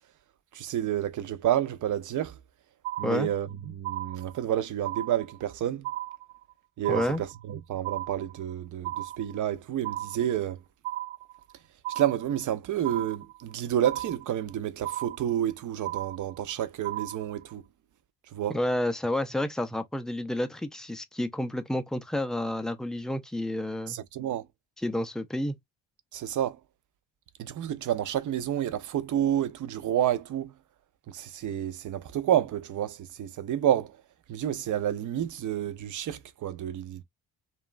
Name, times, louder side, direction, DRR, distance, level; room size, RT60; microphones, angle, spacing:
voice 1, 0.5-2.4 3.0-5.9 6.8-10.6 12.0-17.6 18.3-18.6 23.9-24.5 26.1-26.6 27.4-30.5 31.1-34.0 34.3-37.0, right 11 dB, 45° right, 0.5 m, -29 dB
sound 1, 2.8-3.5 3.8-4.5 4.8-5.5 5.8-6.5 6.8-7.5 7.8-8.5 8.8-9.5 9.8-10.5 10.8-11.5 11.8-12.5 12.8-13.5 13.8-14.5 14.8-15.5 15.8-16.5 16.8-17.5, right 15 dB, 85° right, 1.1 m, -36 dB
voice 2, 6.9-7.2 18.5-24.0 24.8-25.6, left 1 dB, ahead, 0.3 m, -30 dB
2.8 x 2.3 x 2.3 m
cardioid pair, 110°, 41 cm